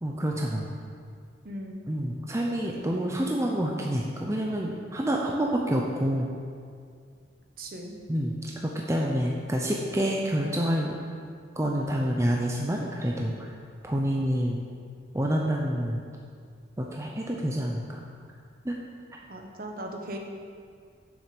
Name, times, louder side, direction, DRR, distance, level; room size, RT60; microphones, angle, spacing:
voice 1, 0.0-0.7 1.9-6.3 8.1-11.0 11.5-13.6 13.8-14.6 15.1-16.0 16.8-18.0 18.6-18.8 19.1-19.2, equal, 15° right, -1 dB, 0.6 m, -28 dB
voice 2, 1.4-1.8 7.6-7.9 19.3-20.2, right 1 dB, 50° right, 2 dB, 1.1 m, -38 dB
7.2 x 6.7 x 6.8 m, 2.2 s
head